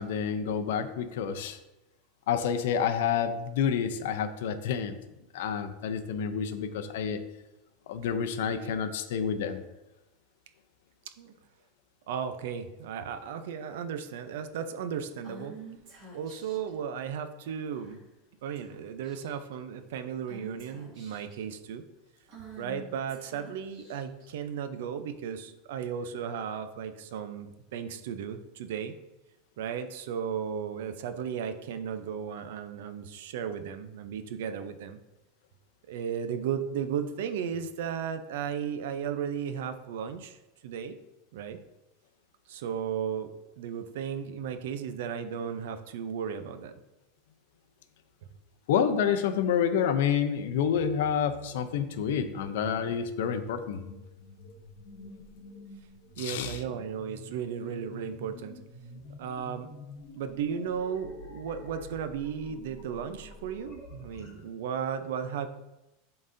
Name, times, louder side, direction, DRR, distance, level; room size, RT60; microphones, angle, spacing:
voice 1, 0.0-1.6 2.3-4.9 5.3-7.2 7.9-9.6 48.7-53.8 56.2-56.6, left 7 dB, 65° left, 9 dB, 0.6 m, -28 dB
voice 2, 12.1-15.6 16.1-18.0 18.4-21.8 22.6-28.9 29.6-35.0 35.9-40.4 40.6-40.9 41.3-41.6 42.5-43.3 43.6-46.7 56.2-58.6 59.2-59.7 60.2-65.5, right 7 dB, 65° right, 9 dB, 0.6 m, -35 dB
Female speech woman speaking / Whispering, 15.2-16.7 17.7-18.1 18.5-18.7 19.0-19.5 20.3-21.4 22.3-24.3, right 2 dB, 40° right, 1.9 m, -48 dB
sound 1, 50.6-64.3, left 2 dB, 30° left, 1.3 m, -48 dB
11.0 x 3.9 x 2.7 m, 0.98 s
supercardioid pair, 180°, 0 cm